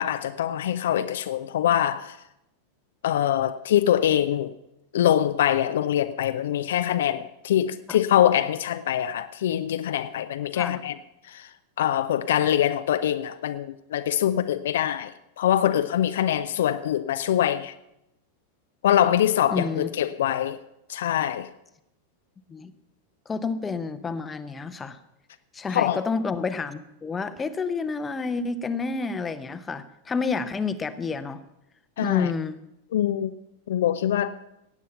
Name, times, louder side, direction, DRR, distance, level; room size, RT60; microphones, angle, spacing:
voice 1, 0.0-2.2 3.0-4.5 4.9-11.0 11.2-11.5 11.8-17.7 18.8-20.6 20.9-21.5 25.7-26.0 32.0-32.3 32.9-33.3 33.7-34.3, left 11 dB, 60° left, 0.5 m, -24 dB
voice 2, 19.5-19.9 22.5-22.7 23.3-25.0 25.5-31.4 32.0-32.6, left 4 dB, 15° left, 0.8 m, -29 dB
17.0 x 8.5 x 5.7 m
figure-of-eight pair, 90°, 0 cm